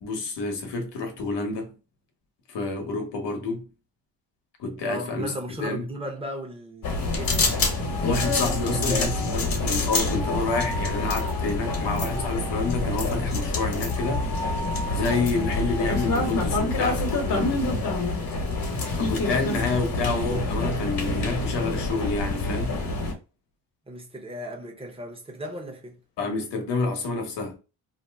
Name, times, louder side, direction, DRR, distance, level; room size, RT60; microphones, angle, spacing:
voice 1, 0.0-1.7 2.5-3.6 4.6-5.3 5.6-5.9 8.0-14.3 14.9-17.6 18.9-22.8 26.2-27.6, left 3 dB, 75° left, 1.0 m, -28 dB
voice 2, 4.8-7.4 8.7-9.2 18.7-19.0 23.9-26.0, equal, 15° right, 0.8 m, -36 dB
sound 1, 6.8-23.1, left 2 dB, 50° left, 1.1 m, -26 dB
sound 2, 7.7-9.4 10.1-13.0 13.9-16.5, equal, 5° left, 0.3 m, -38 dB
2.7 x 2.1 x 3.3 m
cardioid pair, 115°, 43 cm